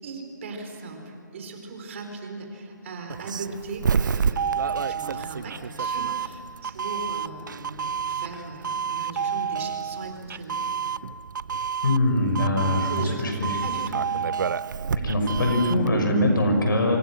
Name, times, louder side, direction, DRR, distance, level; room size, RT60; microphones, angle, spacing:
voice 1, 0.0-10.6 12.9-14.0, right 3 dB, 40° right, 3 dB, 4.4 m, -38 dB
Doorbell, 3.1-15.9, right 6 dB, 70° right, 0.6 m, -29 dB
voice 2, 11.8-12.9 13.2-13.5 15.0-17.0, left 1 dB, 85° left, 3 dB, 6.5 m, -22 dB
27.5 x 25.0 x 6.6 m, 2.6 s
hypercardioid pair, 165°, 11 cm